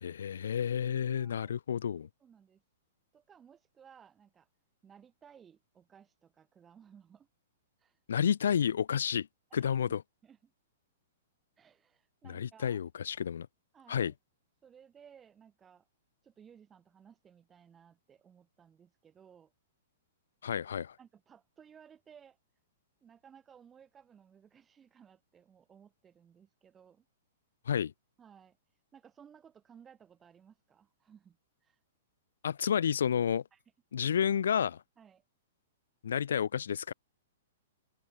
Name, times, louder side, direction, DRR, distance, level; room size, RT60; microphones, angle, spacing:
voice 1, 0.0-2.1 8.1-9.3 9.5-10.0 12.3-13.5 13.9-14.1 20.4-21.0 27.7-27.9 32.4-33.4 33.9-34.8 36.0-36.9, left 8 dB, 85° left, 0.8 m, -30 dB
voice 2, 1.1-1.5 2.2-2.6 3.1-4.5 4.8-7.3 7.8-8.0 9.5-10.0 10.2-10.5 11.6-12.8 13.7-14.1 14.6-15.9 16.2-19.5 21.0-22.4 23.0-27.0 28.2-28.6 28.9-31.8 33.5-33.6 35.0-35.2, right 8 dB, 15° right, 8.0 m, -59 dB
open air
hypercardioid pair, 150°, 0 cm